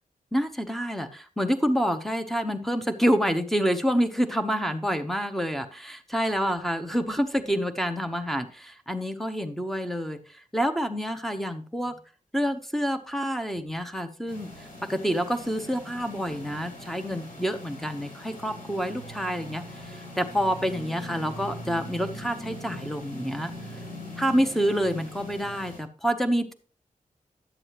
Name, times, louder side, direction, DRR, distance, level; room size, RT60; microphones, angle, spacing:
voice 1, 0.3-12.0 12.3-23.5 24.2-26.5, equal, ahead, 8 dB, 1.0 m, -28 dB
sound 1, 14.3-25.8, equal, 80° left, 5.2 m, -41 dB
11.0 x 7.6 x 3.1 m, 0.38 s
wide cardioid pair, 90°, 14 cm